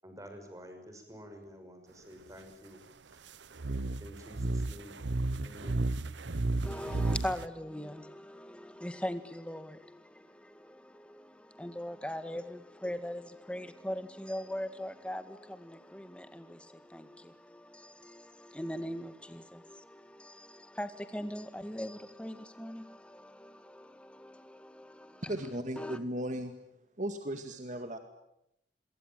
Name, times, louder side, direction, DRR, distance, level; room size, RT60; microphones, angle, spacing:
voice 1, 0.0-3.3 4.0-5.0 5.4-5.9, equal, 20° right, 5 dB, 6.2 m, -50 dB
sound 1, 3.6-7.5, right 2 dB, 80° right, 0.9 m, -32 dB
voice 2, 6.6-25.3 25.8-26.0, equal, 5° left, 10 dB, 1.8 m, -41 dB
voice 3, 25.3-26.5 27.0-28.0, right 1 dB, 45° right, 7 dB, 2.1 m, -36 dB
26.0 x 23.5 x 9.2 m, 0.81 s
head